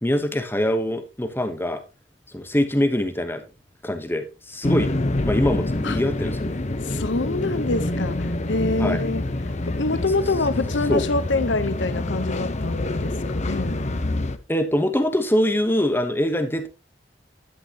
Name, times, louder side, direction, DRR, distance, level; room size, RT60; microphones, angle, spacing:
voice 1, 0.0-1.8 2.3-3.4 3.8-4.9 5.2-6.6 8.8-9.0 10.5-10.6 10.9-11.0 14.5-16.7, left 1 dB, 10° left, 1.1 m, -23 dB
sound 1, 4.6-14.4, left 2 dB, 40° left, 0.9 m, -26 dB
voice 2, 6.8-9.2 9.6-13.9, left 3 dB, 80° left, 1.0 m, -26 dB
12.0 x 9.0 x 2.9 m
head